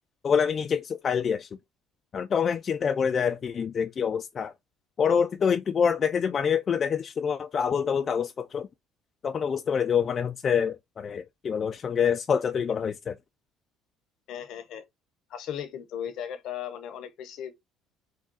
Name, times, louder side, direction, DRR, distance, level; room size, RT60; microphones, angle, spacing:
voice 1, 0.2-1.5 2.1-4.5 5.0-8.7 9.2-13.2, left 7 dB, 45° left, 0.3 m, -26 dB
voice 2, 14.3-14.8 15.3-17.5, left 9 dB, 65° left, 0.7 m, -37 dB
3.7 x 2.3 x 3.9 m
supercardioid pair, 70°, 0 cm